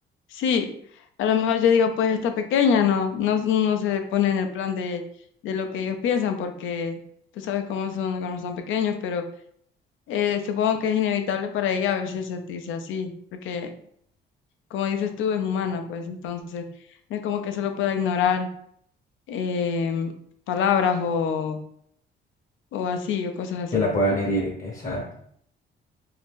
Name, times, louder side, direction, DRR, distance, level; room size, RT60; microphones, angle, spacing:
voice 1, 0.3-0.7 1.2-5.0 5.4-7.0 7.4-9.2 10.1-13.7 14.7-16.6 17.1-18.5 19.3-20.1 20.5-21.6 22.7-23.9, left 7 dB, 85° left, 7 dB, 0.5 m, -25 dB
voice 2, 23.7-25.1, equal, 40° left, -1 dB, 0.7 m, -24 dB
2.7 x 2.5 x 3.5 m, 0.66 s
cardioid pair, 90°, 20 cm